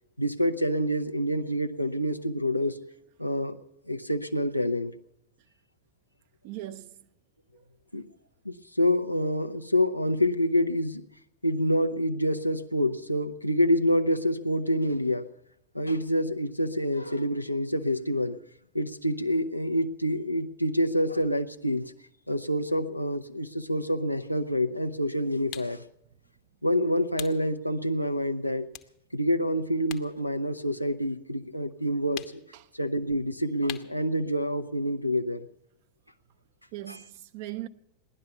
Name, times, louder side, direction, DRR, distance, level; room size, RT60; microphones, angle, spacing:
voice 1, 0.2-2.8 3.2-3.6 3.9-4.9 7.9-8.0 8.4-11.0 11.4-15.3 15.7-18.4 18.7-21.8 22.3-25.8 26.6-28.7 29.1-32.3 32.7-35.5 36.9-37.0, equal, 90° left, 0.7 m, -27 dB
voice 2, 6.4-7.1 7.5-7.6 32.5-32.6 36.7-37.7, right 15 dB, 50° right, 0.7 m, -39 dB
sound 1, 25.5-25.8 27.2-27.4 27.9-28.1 28.7-30.1 30.4-31.5 32.1-32.6 33.7-34.0, left 12 dB, 40° left, 0.9 m, -42 dB
17.5 x 11.0 x 6.8 m
figure-of-eight pair, 90°, 0 cm